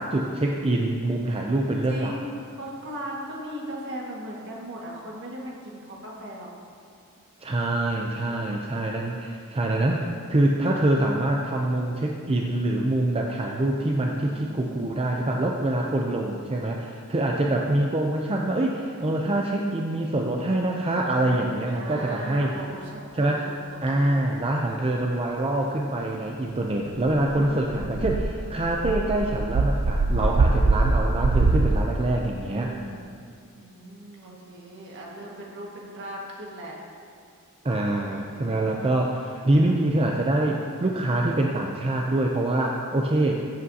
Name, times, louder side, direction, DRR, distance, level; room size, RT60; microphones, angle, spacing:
voice 1, 0.0-2.1 7.4-22.5 23.1-23.5 23.8-32.7 37.6-43.4, right 1 dB, 25° right, 0 dB, 0.5 m, -25 dB
voice 2, 1.9-6.5 8.1-8.8 14.3-15.5 17.3-17.8 21.7-24.2 27.2-28.1 32.4-33.1 33.6-36.8 37.9-38.6, right 1 dB, 55° right, -3 dB, 1.7 m, -39 dB
sound 1, 27.0-31.8, right 3 dB, 80° right, 0.5 m, -23 dB
15.0 x 7.8 x 2.8 m, 2.3 s
head